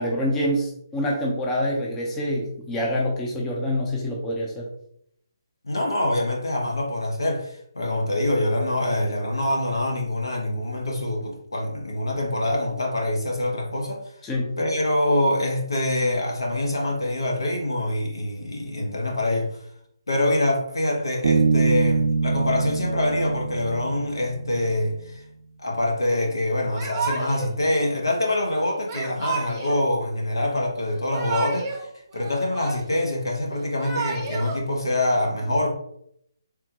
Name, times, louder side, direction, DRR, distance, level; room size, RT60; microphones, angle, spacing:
voice 1, 0.0-4.6 14.2-14.5, equal, 10° left, 0.5 m, -26 dB
voice 2, 5.6-14.0 14.6-19.5 20.1-25.2 25.6-31.9 32.1-35.7, left 1 dB, 85° left, 0.8 m, -25 dB
Bass guitar, 21.2-24.7, right 4 dB, 60° right, 0.4 m, -23 dB
Yell / Crying sobbing, 26.7-27.5 28.9-29.9 30.9-31.8 32.1-33.1 33.6-34.6, right 4 dB, 25° right, 0.7 m, -31 dB
3.5 x 2.1 x 2.8 m
figure-of-eight pair, 150°, 2 cm